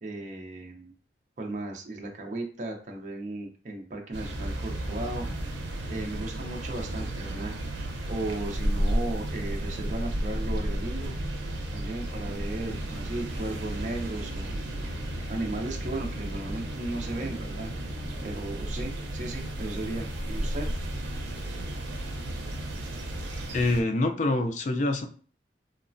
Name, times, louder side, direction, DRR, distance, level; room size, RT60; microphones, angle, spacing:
voice 1, 0.0-0.9 1.4-5.3 5.9-7.5 8.1-11.1 11.7-14.6 15.3-17.7 18.2-20.7, right 2 dB, 40° right, 1 dB, 0.5 m, -35 dB
sound 1, 4.1-23.8, right 1 dB, 90° right, 0.5 m, -33 dB
sound 2, 12.0-18.4, left 1 dB, 20° right, 0.9 m, -46 dB
voice 2, 23.5-25.1, left 2 dB, 40° left, 5 dB, 0.3 m, -25 dB
3.1 x 2.0 x 2.5 m, 0.44 s
head